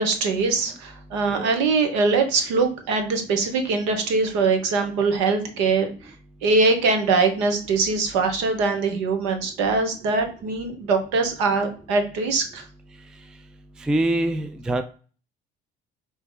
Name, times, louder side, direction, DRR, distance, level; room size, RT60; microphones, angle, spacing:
voice 1, 0.0-5.9 6.4-12.6, right 4 dB, 65° right, 5 dB, 1.1 m, -22 dB
voice 2, 13.9-14.8, right 1 dB, 5° right, 9 dB, 0.3 m, -24 dB
4.5 x 2.9 x 3.7 m, 0.38 s
hypercardioid pair, 60°, 29 cm